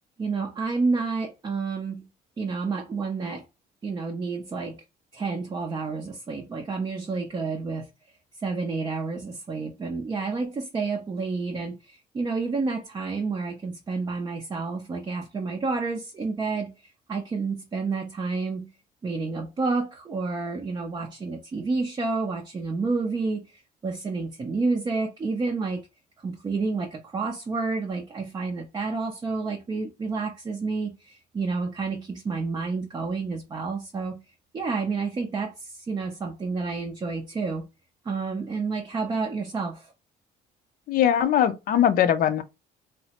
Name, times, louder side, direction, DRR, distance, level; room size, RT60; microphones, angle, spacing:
voice 1, 0.2-2.1 2.4-3.4 3.8-4.8 5.1-7.9 8.4-16.7 17.1-18.7 19.0-25.9 26.2-34.2 34.5-37.7 38.1-39.9, right 4 dB, 25° right, 0.4 m, -29 dB
voice 2, 40.9-42.4, left 10 dB, 55° left, 0.4 m, -21 dB
3.1 x 2.0 x 2.8 m
cardioid pair, 110°, 17 cm